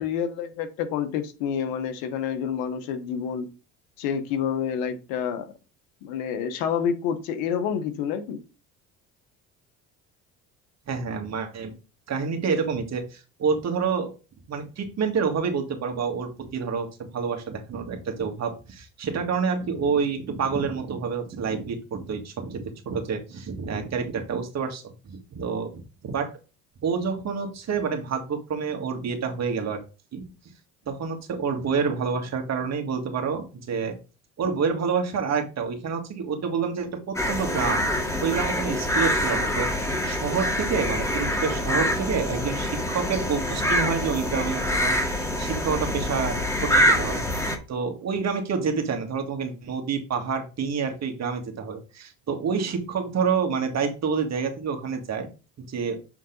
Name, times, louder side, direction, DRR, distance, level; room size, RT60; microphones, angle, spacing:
voice 1, 0.0-3.5 4.0-5.5 6.0-8.4, left 8 dB, 80° left, 1.2 m, -28 dB
voice 2, 10.9-11.7 12.1-14.1 14.5-16.9 17.1-26.3 26.8-29.8 30.1-30.2 30.9-34.0 34.4-55.3 55.6-56.0, right 5 dB, 45° right, 2.0 m, -28 dB
sound 1, 37.2-47.6, equal, 10° left, 2.0 m, -25 dB
7.6 x 4.0 x 4.0 m
supercardioid pair, 85°, 36 cm